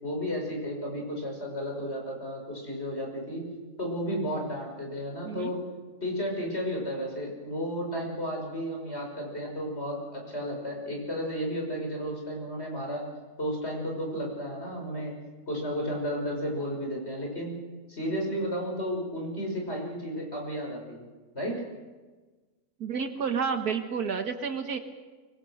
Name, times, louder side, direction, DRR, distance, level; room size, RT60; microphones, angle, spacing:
voice 1, 0.0-3.5 3.8-5.6 6.0-13.1 13.4-15.1 15.5-17.5 17.9-21.0 21.3-21.6, equal, 40° left, 0 dB, 6.4 m, -33 dB
voice 2, 22.8-24.8, right 6 dB, 75° right, 7 dB, 1.9 m, -30 dB
24.0 x 24.0 x 6.4 m, 1.3 s
omnidirectional pair, 1.7 m